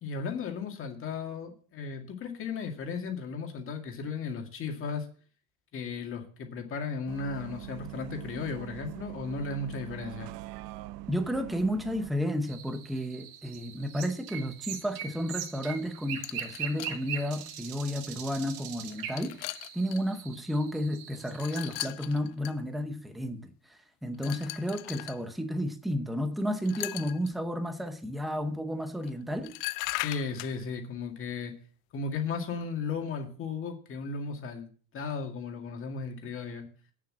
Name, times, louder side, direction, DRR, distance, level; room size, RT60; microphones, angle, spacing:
voice 1, 0.0-5.1 5.7-10.3 30.0-31.6 31.9-36.7, left 5 dB, 25° left, 2.1 m, -35 dB
Bus, 7.1-12.1, right 15 dB, 75° right, 0.9 m, -43 dB
voice 2, 11.1-19.4 19.7-29.5, equal, ahead, 0.8 m, -32 dB
sound 1, 12.5-21.9, right 9 dB, 45° right, 1.9 m, -41 dB
sound 2, 16.2-17.0 17.9-18.0 18.8-20.0 21.3-22.5 24.2-25.2 26.6-27.3 29.0-29.1 29.4-30.6, left 22 dB, 70° left, 0.5 m, -38 dB
8.8 x 7.4 x 7.4 m
cardioid pair, 165°, 48 cm